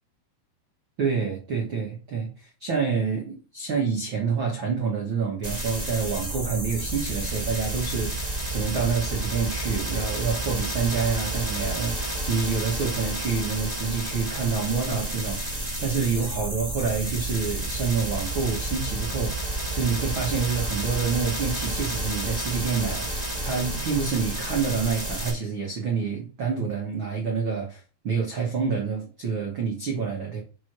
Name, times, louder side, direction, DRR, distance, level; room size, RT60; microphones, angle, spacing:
voice 1, 1.0-30.4, right 5 dB, 75° right, 1.1 m, -28 dB
sound 1, 5.4-25.3, right 1 dB, 20° right, 1.0 m, -30 dB
5.8 x 4.9 x 6.1 m
omnidirectional pair, 4.7 m